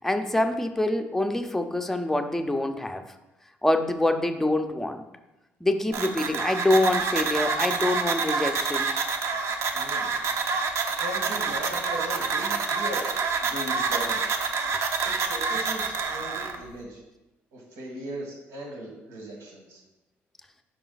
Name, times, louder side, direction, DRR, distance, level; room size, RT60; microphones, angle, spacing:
voice 1, 0.0-3.0 3.6-5.0 5.6-8.9, left 1 dB, 5° left, 6 dB, 0.5 m, -25 dB
sound 1, 5.9-16.6, right 4 dB, 65° right, 0.7 m, -27 dB
voice 2, 9.7-10.1 11.0-13.1 13.4-14.2 15.0-17.0 17.5-19.8, right 1 dB, 85° right, -1 dB, 1.8 m, -38 dB
5.0 x 4.9 x 3.9 m, 0.99 s
cardioid pair, 90°, 5 cm